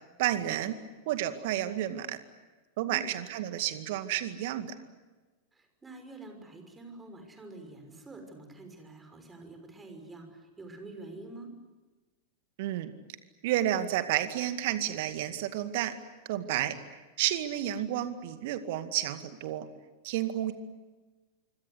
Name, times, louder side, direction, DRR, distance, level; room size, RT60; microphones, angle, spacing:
voice 1, 0.2-0.7 1.1-2.2 2.8-4.8 12.6-12.9 13.4-15.9 16.3-16.8 17.2-19.7 20.0-20.5, right 12 dB, 50° right, 10 dB, 2.1 m, -31 dB
voice 2, 5.5-11.5, right 2 dB, 15° right, 5 dB, 6.0 m, -47 dB
26.0 x 25.0 x 8.2 m, 1.2 s
figure-of-eight pair, 90°, 0 cm